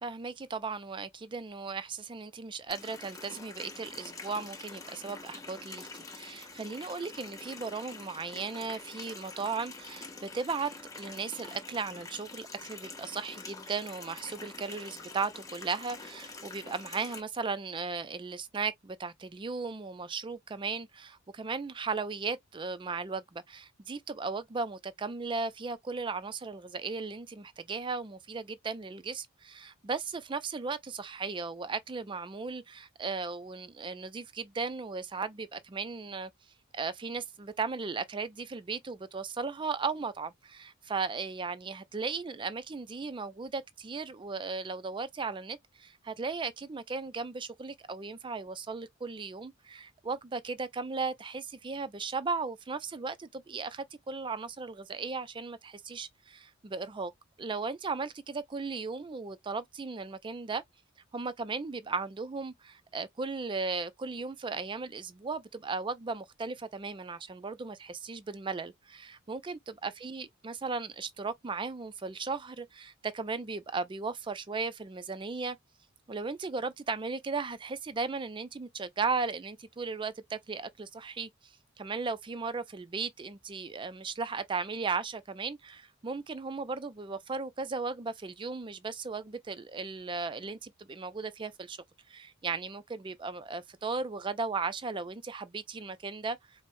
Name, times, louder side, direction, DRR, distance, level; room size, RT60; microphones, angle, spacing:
voice 1, 0.0-36.3 36.7-57.1 57.4-60.6 61.1-75.6 76.1-81.3 81.8-91.8 92.1-96.4, right 4 dB, 25° right, 0.4 m, -36 dB
Water tap faucet, 2.7-17.2, left 3 dB, 15° left, 0.7 m, -46 dB
4.6 x 2.1 x 2.6 m
head